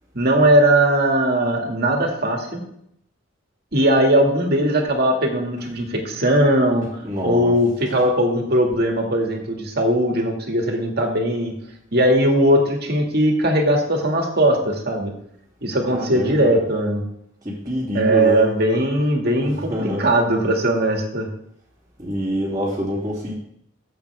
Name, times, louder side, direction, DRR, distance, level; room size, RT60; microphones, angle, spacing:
voice 1, 0.1-2.6 3.7-11.5 11.9-15.1 15.6-17.0 17.9-21.3, right 1 dB, 55° right, 1 dB, 2.1 m, -19 dB
voice 2, 7.0-7.5 15.9-16.5 17.4-18.4 19.4-20.0 22.0-23.3, equal, 20° right, -11 dB, 2.9 m, -26 dB
14.5 x 7.9 x 3.5 m, 0.72 s
head